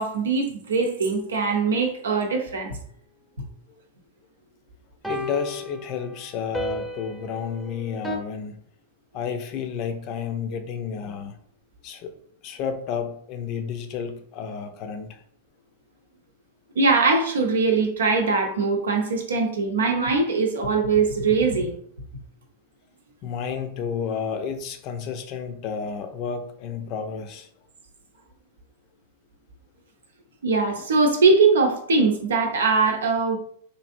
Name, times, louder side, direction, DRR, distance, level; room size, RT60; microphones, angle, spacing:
voice 1, 0.0-2.8 16.8-21.8 30.4-33.4, right 4 dB, 80° right, 3 dB, 0.6 m, -21 dB
sound 1, 0.8-0.9 5.0-8.2, equal, ahead, 0.6 m, -34 dB
voice 2, 5.1-8.6 9.1-11.4 11.8-12.1 12.4-15.2 23.2-27.5, left 6 dB, 45° left, 7 dB, 0.5 m, -31 dB
3.2 x 2.6 x 2.6 m, 0.63 s
hypercardioid pair, 100°, 0 cm